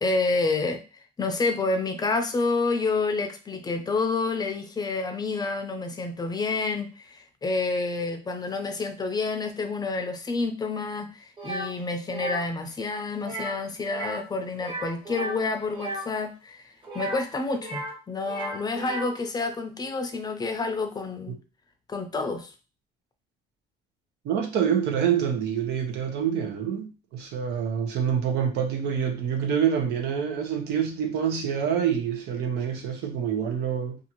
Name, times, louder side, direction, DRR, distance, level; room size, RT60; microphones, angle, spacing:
voice 1, 0.0-21.4 21.9-22.5, left 3 dB, 25° left, 6 dB, 0.5 m, -29 dB
sound 1, 11.4-11.7 12.1-12.4 13.2-13.6 13.9-14.3 14.5-16.1 16.8-18.0 18.2-19.2, right 2 dB, 30° right, 1.0 m, -35 dB
voice 2, 24.2-34.0, right 8 dB, 80° right, 4 dB, 0.8 m, -26 dB
2.6 x 2.5 x 2.9 m, 0.31 s
cardioid pair, 110°, 17 cm